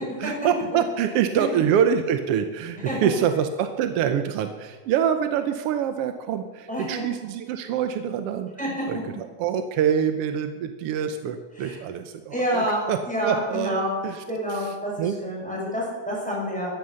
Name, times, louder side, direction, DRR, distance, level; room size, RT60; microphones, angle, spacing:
voice 1, 0.2-8.5 8.9-14.2 14.5-15.2 15.5-15.7, right 8 dB, 70° right, 8 dB, 1.4 m, -25 dB
voice 2, 6.7-7.0 8.6-8.7 11.6-11.8 12.3-12.8 13.1-13.9 14.3-14.9 15.2-16.7, equal, ahead, -5 dB, 6.1 m, -28 dB
14.5 x 11.0 x 6.5 m, 1.3 s
omnidirectional pair, 3.4 m